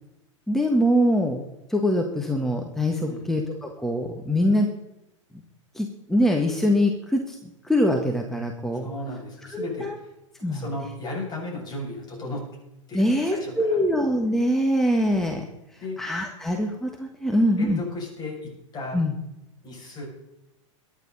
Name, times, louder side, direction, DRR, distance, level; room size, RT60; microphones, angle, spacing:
voice 1, 0.5-1.4 1.7-4.7 5.8-7.4 7.7-8.9 9.5-10.0 10.4-10.6 12.9-15.4 16.0-17.8 18.9-19.1, equal, ahead, 2 dB, 1.6 m, -23 dB
voice 2, 3.0-3.3 8.7-10.1 10.4-12.5 12.9-13.8 15.8-16.0 17.3-19.0 19.6-20.0, left 2 dB, 25° left, -1 dB, 7.0 m, -35 dB
23.0 x 9.8 x 4.1 m, 0.91 s
figure-of-eight pair, 90°, 17 cm